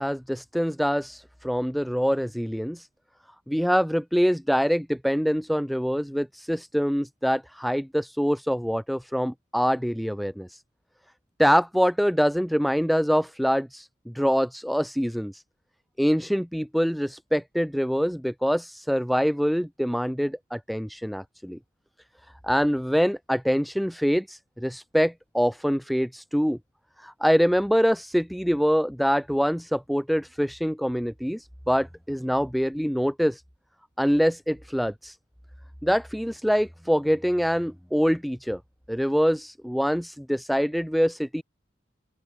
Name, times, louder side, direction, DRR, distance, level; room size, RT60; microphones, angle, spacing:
voice 1, 0.0-2.9 3.5-10.6 11.4-15.4 16.0-21.6 22.4-26.6 27.0-33.4 34.0-35.2 35.8-38.6 38.9-41.4, equal, ahead, 5.8 m, -25 dB
open air
head